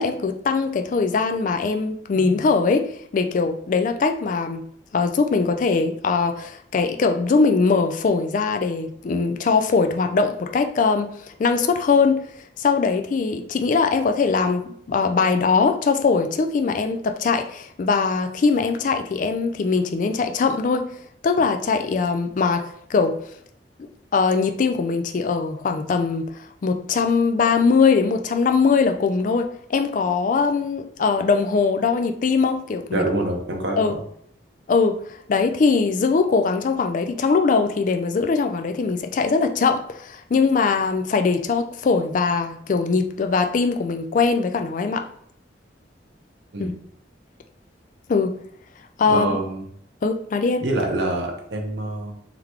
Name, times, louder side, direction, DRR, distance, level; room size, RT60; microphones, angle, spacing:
voice 1, 0.0-4.6 4.9-12.2 12.6-20.9 21.2-23.2 23.8-26.3 26.6-33.0 33.8-33.9 34.7-35.0 35.3-45.1 46.6-46.7 48.1-48.4 49.0-49.3 50.0-50.6, left 4 dB, 45° left, 6 dB, 0.3 m, -21 dB
voice 2, 32.9-34.0 46.5-46.7 49.1-49.6 50.6-52.1, right 2 dB, 70° right, 1 dB, 0.9 m, -25 dB
3.8 x 3.3 x 3.0 m, 0.66 s
head